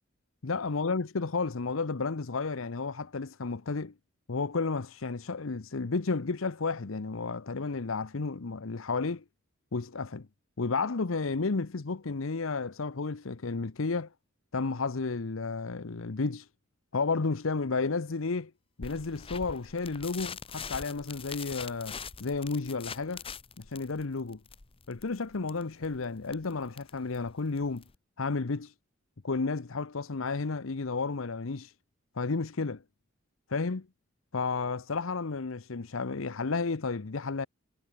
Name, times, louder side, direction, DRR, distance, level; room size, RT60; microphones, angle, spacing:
voice 1, 0.4-3.9 4.3-9.2 9.7-10.3 10.6-14.1 14.5-16.5 16.9-18.5 18.8-23.2 23.6-24.4 24.9-27.8 28.2-28.7 29.2-31.7 32.1-32.8 33.5-33.9 34.3-37.5, left 4 dB, 70° left, 0.8 m, -32 dB
sound 1, 18.8-28.0, left 6 dB, 25° left, 0.8 m, -44 dB
head